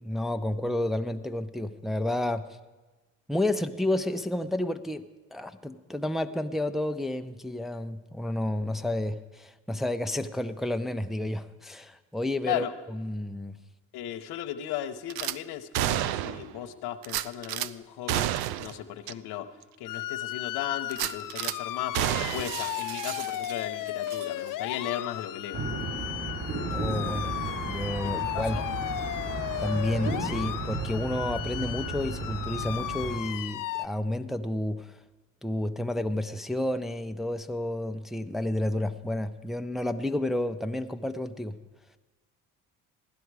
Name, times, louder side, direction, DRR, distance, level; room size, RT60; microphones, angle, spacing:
voice 1, 0.0-2.4 3.3-5.0 5.3-12.7 12.9-13.5 26.7-27.3 27.7-28.6 29.6-35.0 35.4-41.5, left 1 dB, ahead, 7 dB, 0.6 m, -30 dB
voice 2, 13.9-18.3 18.6-19.5 19.8-25.6 28.0-28.7, left 11 dB, 80° left, 8 dB, 0.9 m, -36 dB
Gunshot gunfire / Glass, 15.1-15.4 15.7-16.5 17.0-17.7 18.1-18.7 19.1-19.2 19.6-19.7 20.9-21.6 21.9-23.7 24.1-24.3, right 13 dB, 75° right, 0.5 m, -30 dB
sound 1, 19.9-33.9, left 14 dB, 55° left, 0.6 m, -35 dB
sound 2, 25.5-33.2, right 3 dB, 40° right, 3.5 m, -34 dB
16.0 x 11.0 x 4.8 m, 1.2 s
supercardioid pair, 60°, 38 cm